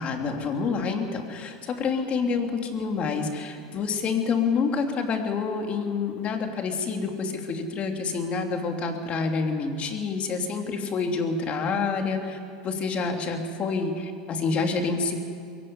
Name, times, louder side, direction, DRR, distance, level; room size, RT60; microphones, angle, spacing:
voice 1, 0.0-12.4 12.6-15.1, left 4 dB, 35° left, 3 dB, 2.9 m, -27 dB
23.0 x 15.5 x 9.8 m, 2.3 s
supercardioid pair, 130°, 4 cm